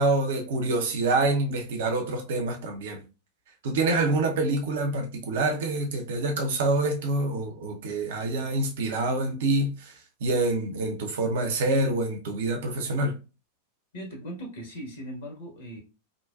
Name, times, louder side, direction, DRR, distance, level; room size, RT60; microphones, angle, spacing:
voice 1, 0.0-3.0 3.6-9.9 10.2-13.2, right 2 dB, 55° right, 0.7 m, -26 dB
voice 2, 13.9-15.8, equal, 60° left, 1.6 m, -39 dB
3.8 x 2.2 x 2.3 m
figure-of-eight pair, 90°, 0 cm